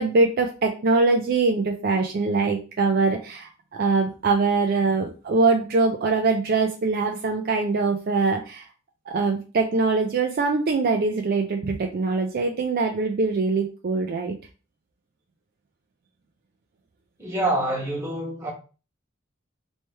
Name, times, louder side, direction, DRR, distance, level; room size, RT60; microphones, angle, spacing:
voice 1, 0.0-8.7 9.1-14.3, right 3 dB, 45° right, 0.4 m, -23 dB
voice 2, 17.2-18.5, right 1 dB, 15° right, 1.4 m, -26 dB
3.2 x 3.1 x 3.2 m
head